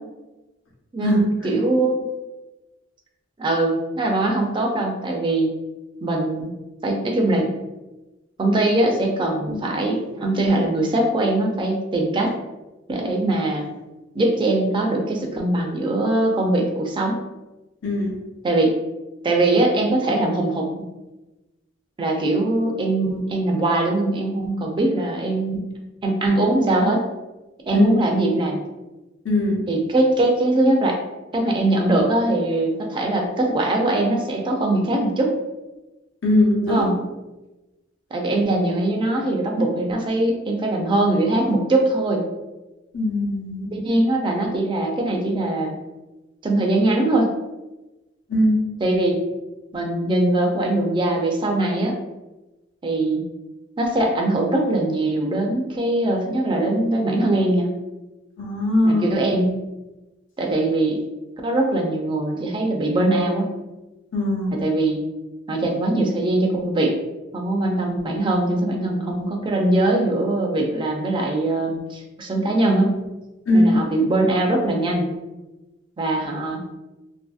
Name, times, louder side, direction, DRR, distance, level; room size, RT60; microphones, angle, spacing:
voice 1, 0.9-1.9 3.4-5.5 6.0-6.5 6.8-7.6 8.4-12.3 12.9-13.7 14.1-17.2 18.4-18.7 19.2-20.7 22.0-25.6 26.0-27.0 27.7-28.6 29.7-31.0 31.3-35.3 36.7-36.9 38.1-42.3 43.7-45.7 46.4-47.3 48.8-49.1 49.7-52.0 52.8-53.2 53.8-57.7 58.8-59.5 60.4-61.0 61.4-63.6 64.5-65.0 65.5-67.0 67.3-72.9 73.5-75.1 76.0-76.6, right 2 dB, 25° right, 1 dB, 0.3 m, -21 dB
voice 2, 17.8-18.2 27.7-27.9 29.2-29.6 36.2-36.9 42.9-43.7 48.3-48.6 58.4-59.1 64.1-64.6 73.5-73.8, left 1 dB, 90° left, -2 dB, 0.8 m, -20 dB
2.6 x 2.6 x 2.3 m, 1.1 s
head